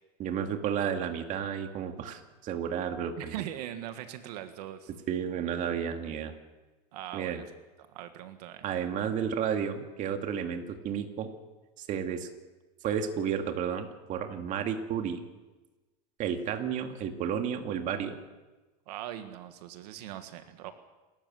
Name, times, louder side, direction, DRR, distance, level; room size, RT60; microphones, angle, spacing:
voice 1, 0.2-3.3 5.1-6.3 7.1-7.4 8.6-11.3 11.8-12.3 12.8-15.2 16.2-18.2, right 8 dB, 40° right, 5 dB, 2.2 m, -32 dB
voice 2, 3.2-4.9 6.9-7.5 7.9-8.6 18.9-20.7, right 12 dB, 80° right, 8 dB, 1.7 m, -40 dB
28.5 x 13.5 x 7.8 m, 1.2 s
supercardioid pair, 145°, 20 cm